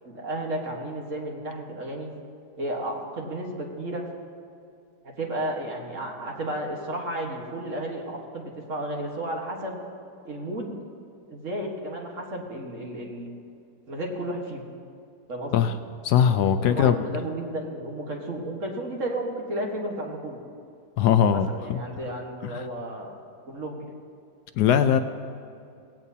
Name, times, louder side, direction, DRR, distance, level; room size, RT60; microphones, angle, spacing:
voice 1, 0.0-2.1 2.6-4.1 5.0-9.8 10.2-10.8 11.3-13.3 13.9-14.6 15.3-15.7 16.7-20.4 21.3-23.2 23.5-23.9, right 1 dB, 45° right, 0 dB, 1.8 m, -33 dB
voice 2, 16.0-17.0 21.0-21.8 22.4-22.7 24.6-25.0, left 8 dB, 75° left, 10 dB, 1.0 m, -21 dB
17.5 x 16.5 x 2.8 m, 2.5 s
omnidirectional pair, 2.0 m